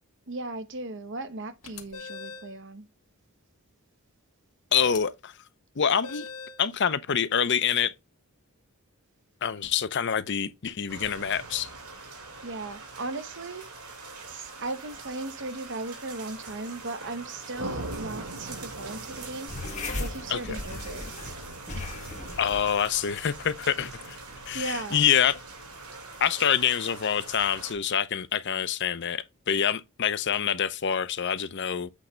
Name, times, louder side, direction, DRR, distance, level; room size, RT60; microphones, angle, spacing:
voice 1, 0.3-2.9 12.4-13.7 14.3-19.5 19.9-21.1 21.7-21.9 24.5-25.1, right 2 dB, 55° right, 1.0 m, -37 dB
sound 1, 1.6-2.5 4.8-5.0 6.0-6.6, left 5 dB, 80° left, 1.4 m, -41 dB
voice 2, 4.7-5.3 5.8-6.3 6.6-7.9 9.4-11.7 20.3-20.6 22.4-24.2 24.5-25.4 26.2-31.9, left 8 dB, 50° left, 0.6 m, -26 dB
sound 2, 10.9-27.7, right 3 dB, 80° right, 2.9 m, -42 dB
sound 3, 19.5-26.4, left 2 dB, 30° left, 1.8 m, -39 dB
8.4 x 3.2 x 5.0 m
head